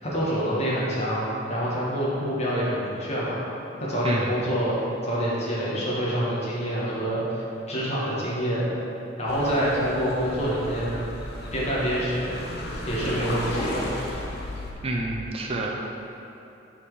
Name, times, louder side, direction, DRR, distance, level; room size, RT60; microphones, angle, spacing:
voice 1, 0.0-3.4 3.8-8.7 9.2-11.0 11.5-12.3 12.9-13.9, equal, 35° left, -7 dB, 1.4 m, -26 dB
sound 1, 9.3-14.7, left 1 dB, 60° left, 0.8 m, -34 dB
voice 2, 14.8-15.8, right 2 dB, 35° right, -1 dB, 0.5 m, -28 dB
5.4 x 4.3 x 4.8 m, 2.9 s
head